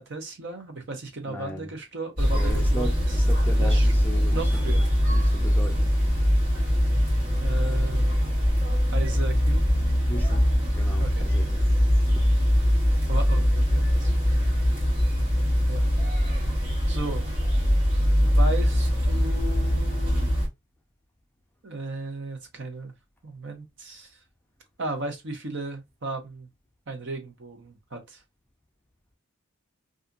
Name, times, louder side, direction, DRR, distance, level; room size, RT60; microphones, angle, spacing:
voice 1, 0.0-3.1 3.6-3.9 4.3-4.8 7.4-8.1 8.9-9.8 11.0-11.3 13.1-14.2 15.7-15.9 16.9-17.2 18.2-20.3 21.6-22.9 23.2-24.1 24.8-26.5 26.9-28.2, right 2 dB, 55° right, 0.7 m, -35 dB
voice 2, 1.2-1.7 2.3-4.8 5.1-6.0 10.0-10.4 10.7-11.8 12.2-12.3, equal, 10° left, 0.4 m, -37 dB
sound 1, 2.2-20.5, equal, 40° right, 1.5 m, -22 dB
2.7 x 2.4 x 2.4 m
head